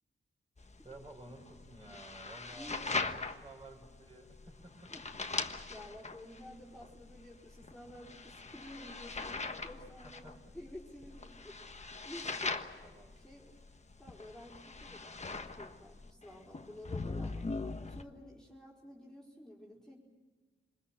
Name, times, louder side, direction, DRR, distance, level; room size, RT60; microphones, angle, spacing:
sound 1, 0.6-18.0, left 3 dB, 30° left, 1.3 m, -41 dB
voice 1, 0.8-4.9 10.0-10.6 12.8-13.2, right 2 dB, 25° right, -1 dB, 5.7 m, -53 dB
voice 2, 2.5-3.2 4.9-5.1 5.7-13.6 14.0-17.5 17.9-20.0, left 1 dB, 5° left, -5 dB, 4.4 m, -52 dB
26.5 x 20.5 x 7.4 m, 1.5 s
cardioid pair, 80°, 21 cm